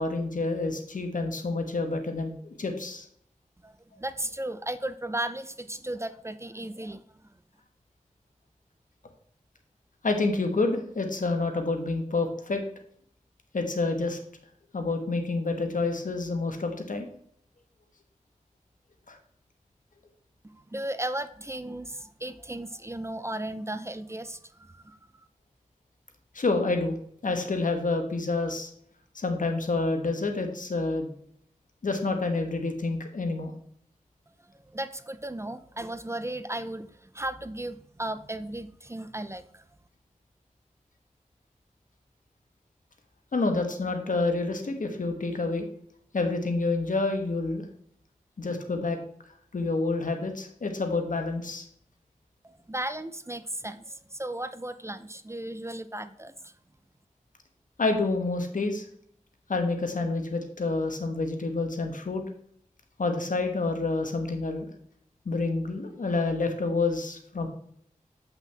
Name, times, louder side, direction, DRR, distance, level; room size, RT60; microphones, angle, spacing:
voice 1, 0.0-3.1 10.0-12.6 13.5-14.2 14.7-17.1 19.1-19.2 26.3-28.7 29.1-31.1 31.8-33.5 43.3-45.6 46.1-47.7 48.4-49.0 49.5-51.7 57.8-58.8 59.5-62.2 63.0-64.7 65.2-67.5, left 3 dB, 75° left, 5 dB, 1.3 m, -28 dB
voice 2, 3.6-7.0 20.5-25.0 34.7-39.6 52.7-56.5, right 1 dB, 20° right, 12 dB, 0.5 m, -35 dB
7.8 x 5.8 x 3.4 m, 0.67 s
cardioid pair, 45°, 14 cm